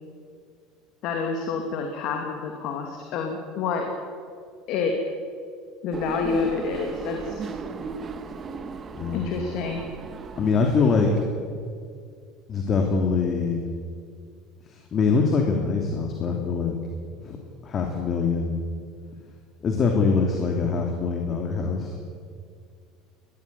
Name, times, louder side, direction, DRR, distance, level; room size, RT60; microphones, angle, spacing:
voice 1, 1.0-3.9 4.7-4.9 5.8-7.5 9.1-9.9, left 5 dB, 60° left, 3 dB, 2.6 m, -28 dB
sound 1, 5.9-11.2, right 5 dB, 35° right, 1.7 m, -36 dB
voice 2, 8.9-9.2 10.4-11.1 12.5-13.6 14.7-16.8 17.2-17.4 17.6-18.6 19.6-22.0, left 4 dB, 40° left, 2 dB, 2.8 m, -23 dB
20.0 x 13.5 x 9.6 m, 2.2 s
hypercardioid pair, 85°, 0 cm